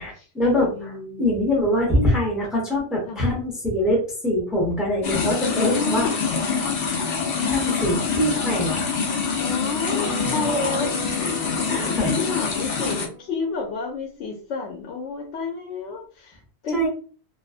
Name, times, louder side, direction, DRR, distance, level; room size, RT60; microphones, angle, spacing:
voice 1, 0.0-0.9 1.2-6.1 7.5-9.0 11.7-12.1 16.7-16.9, left 1 dB, ahead, -3 dB, 0.8 m, -23 dB
voice 2, 0.7-1.2 3.1-3.3 5.4-6.3 7.3-7.9 9.4-16.9, left 4 dB, 85° left, 1 dB, 0.9 m, -30 dB
sound 1, 5.0-13.1, left 5 dB, 55° left, 0.7 m, -25 dB
Bowed string instrument, 9.8-13.8, right 3 dB, 60° right, 0.7 m, -39 dB
2.4 x 2.3 x 2.4 m, 0.40 s
omnidirectional pair, 1.1 m